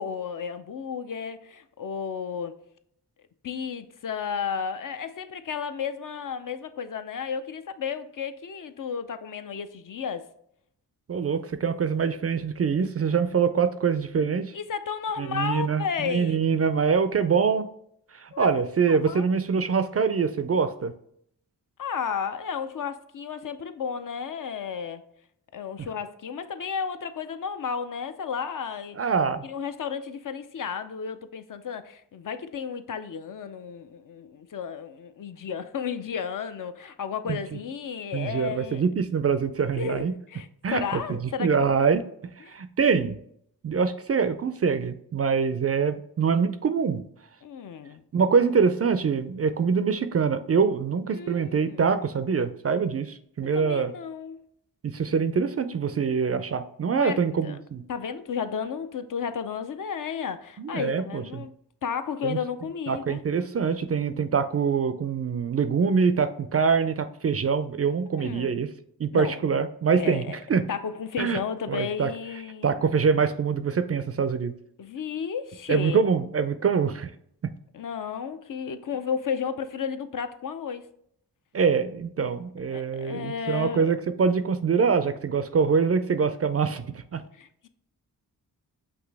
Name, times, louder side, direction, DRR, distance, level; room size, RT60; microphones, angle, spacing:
voice 1, 0.0-2.6 3.4-10.2 14.5-16.4 18.3-19.3 21.8-25.0 25.5-29.0 29.4-38.8 39.7-41.7 42.5-42.6 47.4-48.0 51.1-51.9 53.4-54.4 56.9-57.2 57.4-57.6 57.9-61.5 61.8-63.2 68.1-68.5 69.1-69.4 70.0-70.4 70.7-72.8 74.8-76.0 77.7-80.9 82.7-83.9 87.3-87.7, left 6 dB, 50° left, 0.5 m, -33 dB
voice 2, 11.1-14.5 15.2-17.7 18.1-20.9 29.0-29.5 37.3-37.4 38.1-40.1 40.6-42.0 42.4-43.2 43.6-47.0 48.1-53.9 54.8-57.8 60.6-61.4 62.2-62.4 62.9-68.7 69.0-70.6 71.2-71.4 71.7-72.1 72.6-74.5 75.7-77.1 81.5-87.2, right 6 dB, 40° right, 0.4 m, -24 dB
6.0 x 2.6 x 3.3 m
cardioid pair, 40°, 40 cm